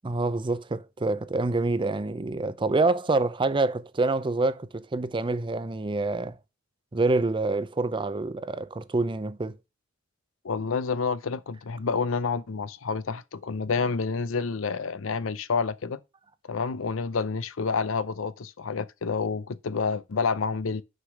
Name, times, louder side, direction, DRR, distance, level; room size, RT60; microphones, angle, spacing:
voice 1, 0.0-6.3 6.9-9.6, right 3 dB, 25° right, 0.5 m, -26 dB
voice 2, 10.4-16.0 16.5-20.8, left 5 dB, 85° left, 0.6 m, -29 dB
6.5 x 4.9 x 6.3 m
head